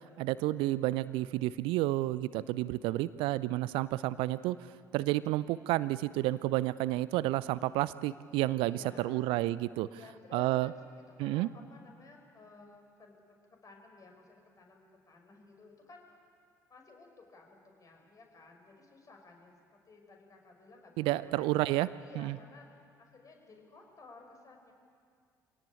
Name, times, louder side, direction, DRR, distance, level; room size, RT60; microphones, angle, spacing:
voice 1, 0.2-4.6 4.9-9.9 10.3-10.7 11.2-11.5 21.0-21.9 22.2-22.4, right 17 dB, 60° right, 18 dB, 0.5 m, -30 dB
voice 2, 8.6-9.3 9.9-13.4 13.6-16.2 16.7-21.5 22.0-24.7, left 3 dB, 35° left, 2 dB, 5.8 m, -55 dB
25.0 x 17.5 x 8.8 m, 2.2 s
figure-of-eight pair, 50°, 10 cm